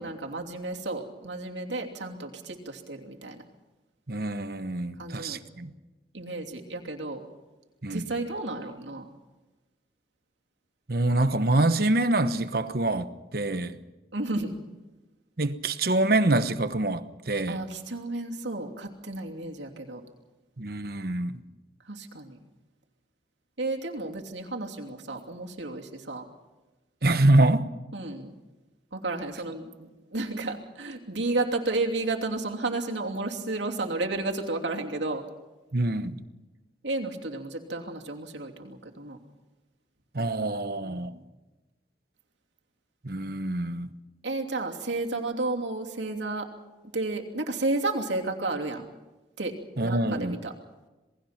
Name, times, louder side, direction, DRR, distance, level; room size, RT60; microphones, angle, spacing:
voice 1, 0.0-3.4 5.0-5.4 6.1-7.2 7.9-9.1 14.1-14.6 17.5-20.0 21.9-22.4 23.6-26.2 27.9-28.3 28.9-35.2 36.8-39.2 40.8-41.2 44.2-46.5 46.9-48.9 49.4-49.6 49.8-50.5, right 2 dB, 80° right, 2.9 m, -32 dB
voice 2, 4.1-5.7 7.8-8.1 10.9-13.8 15.4-17.6 20.6-21.4 27.0-27.7 35.7-36.1 40.1-41.1 43.0-43.9 49.8-50.4, right 2 dB, 55° right, 1.1 m, -25 dB
27.5 x 19.5 x 5.9 m
head